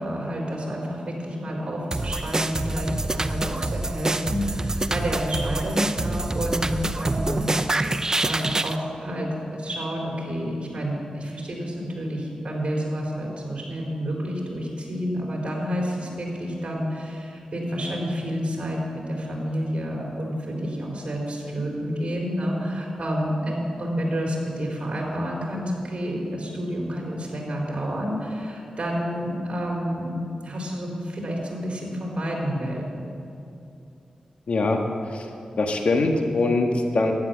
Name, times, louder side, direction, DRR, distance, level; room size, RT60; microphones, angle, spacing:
voice 1, 0.0-7.9 8.2-30.2 30.4-33.0, equal, 50° right, -1 dB, 4.4 m, -29 dB
sound 1, 1.9-8.8, right 2 dB, 25° right, 0.6 m, -26 dB
voice 2, 34.5-34.8 35.1-35.3 35.6-37.1, left 2 dB, 65° left, 3 dB, 1.5 m, -22 dB
12.5 x 10.5 x 7.7 m, 2.6 s
cardioid pair, 55°, 2 cm